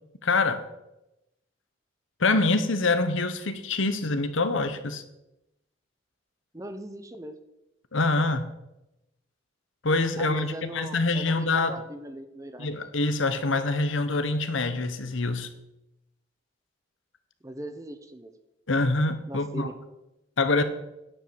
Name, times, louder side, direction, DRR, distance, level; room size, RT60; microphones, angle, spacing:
voice 1, 0.2-0.6 2.2-5.0 7.9-8.5 9.8-11.8 12.6-15.5 18.7-19.7 20.4-20.6, left 3 dB, 75° left, 10 dB, 1.0 m, -25 dB
voice 2, 6.5-7.4 10.2-12.7 17.4-18.3 19.3-19.7, right 1 dB, 15° right, 8 dB, 0.8 m, -39 dB
9.9 x 5.5 x 7.7 m, 0.90 s
head